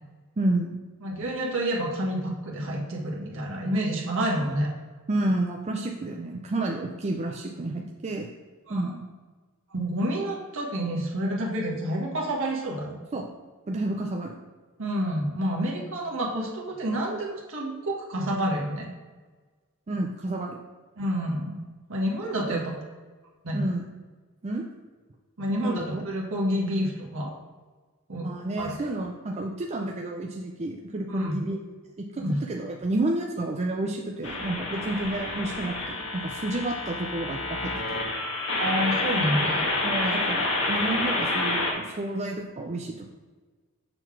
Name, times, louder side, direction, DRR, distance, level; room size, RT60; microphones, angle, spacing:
voice 1, 0.4-0.8 5.1-8.3 8.7-9.1 13.1-13.2 13.7-14.4 19.9-20.6 22.5-22.6 23.5-23.9 24.4-24.7 25.5-26.0 28.2-31.6 32.0-38.0 39.8-43.1, right 2 dB, 30° right, 1 dB, 0.5 m, -30 dB
voice 2, 1.0-4.7 8.7-8.9 9.7-13.0 14.8-18.9 21.0-21.6 21.9-22.7 23.4-23.7 25.4-27.3 28.1-28.3 28.6-28.8 31.1-31.4 32.2-32.4 38.6-39.7, equal, 65° right, -2 dB, 1.6 m, -29 dB
sound 1, 34.2-41.7, left 2 dB, 65° left, 1.5 m, -28 dB
6.8 x 3.9 x 6.0 m, 1.4 s
head